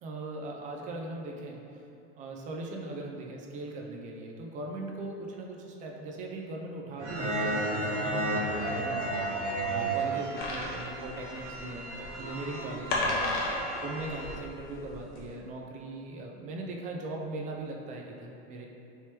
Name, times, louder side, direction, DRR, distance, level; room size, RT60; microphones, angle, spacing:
voice 1, 0.0-1.6 2.2-9.0 9.6-11.9 12.2-18.7, right 2 dB, 25° right, 0 dB, 0.3 m, -40 dB
sound 1, 7.0-14.4, right 2 dB, 85° right, 0.7 m, -33 dB
sound 2, 10.4-15.3, left 2 dB, 50° left, 0.8 m, -33 dB
3.3 x 3.0 x 2.8 m, 2.8 s
hypercardioid pair, 110°, 35 cm